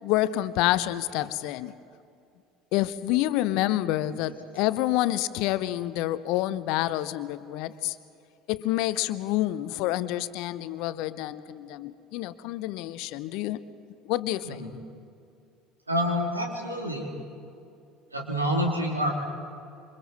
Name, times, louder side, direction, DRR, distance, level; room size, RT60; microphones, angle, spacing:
voice 1, 0.0-1.8 2.7-8.0 8.5-13.6 14.0-14.6, left 15 dB, 60° left, 15 dB, 0.8 m, -28 dB
voice 2, 15.9-17.1 18.1-19.1, equal, 90° right, 0 dB, 2.8 m, -28 dB
27.0 x 25.5 x 4.2 m, 2.5 s
figure-of-eight pair, 60°, 0 cm